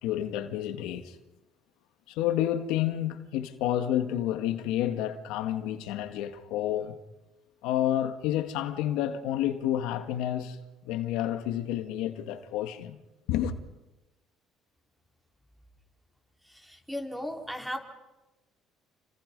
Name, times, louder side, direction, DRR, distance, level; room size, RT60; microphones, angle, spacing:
voice 1, 0.0-1.2 2.1-7.0 7.6-10.6 10.8-13.0 13.3-13.6, left 11 dB, 90° left, 1.9 m, -30 dB
voice 2, 16.4-17.8, equal, ahead, 4.2 m, -36 dB
29.5 x 26.5 x 5.5 m
cardioid pair, 120°, 0 cm